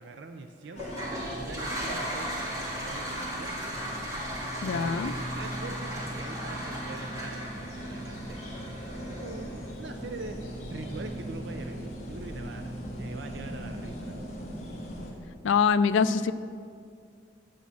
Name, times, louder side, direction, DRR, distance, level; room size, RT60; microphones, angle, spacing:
voice 1, 0.0-3.7 4.6-14.5, right 3 dB, 60° right, 6 dB, 0.5 m, -43 dB
sound 1, 0.7-15.1, equal, 35° left, 1.7 m, -40 dB
Toilet flush, 0.7-9.6, equal, 20° right, 1.8 m, -37 dB
voice 2, 4.6-5.1 15.4-16.3, left 6 dB, 75° left, 13 dB, 0.4 m, -24 dB
sound 2, 4.9-14.9, right 1 dB, 5° left, 0.5 m, -46 dB
8.4 x 6.3 x 7.1 m, 2.3 s
head